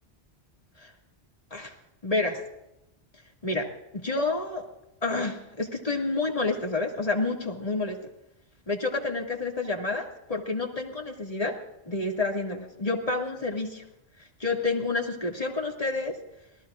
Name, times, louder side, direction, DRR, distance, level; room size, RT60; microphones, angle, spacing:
voice 1, 2.0-2.4 3.4-4.7 5.0-8.0 8.7-11.6 11.9-13.8 14.4-16.2, left 3 dB, 35° left, 0 dB, 2.5 m, -29 dB
27.5 x 18.5 x 2.6 m, 0.90 s
omnidirectional pair, 1.1 m